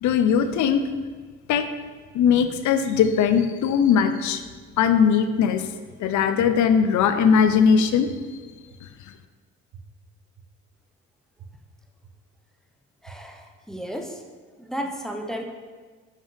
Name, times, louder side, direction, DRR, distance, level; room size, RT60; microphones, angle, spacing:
voice 1, 0.0-0.8 1.5-1.7 2.1-4.4 4.8-5.7 6.0-8.1, left 7 dB, 70° left, 9 dB, 0.6 m, -19 dB
sound 1, 6.4-6.5 7.0-7.1 8.1-8.2 8.7-8.8 9.7-9.8 10.4-10.5 11.4-11.5 12.0-12.1 13.0-13.1 13.7-13.8, right 8 dB, 75° right, 0.9 m, -45 dB
voice 2, 13.0-14.1 14.6-15.4, equal, ahead, 3 dB, 0.7 m, -33 dB
5.3 x 5.1 x 3.9 m, 1.4 s
cardioid pair, 90°, 30 cm